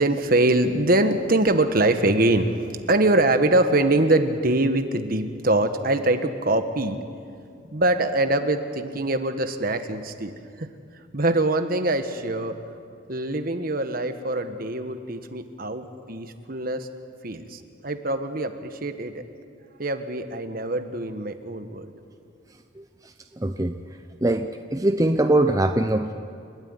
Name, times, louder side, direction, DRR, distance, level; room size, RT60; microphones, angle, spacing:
voice 1, 0.0-7.0 7.7-10.3 10.6-10.7 11.1-12.5 13.1-16.9 17.2-19.2 19.8-21.9, right 2 dB, 50° right, 8 dB, 1.4 m, -23 dB
voice 2, 22.8-23.8 24.2-26.1, right 1 dB, 20° right, 6 dB, 0.6 m, -23 dB
30.0 x 13.0 x 9.8 m, 2.4 s
head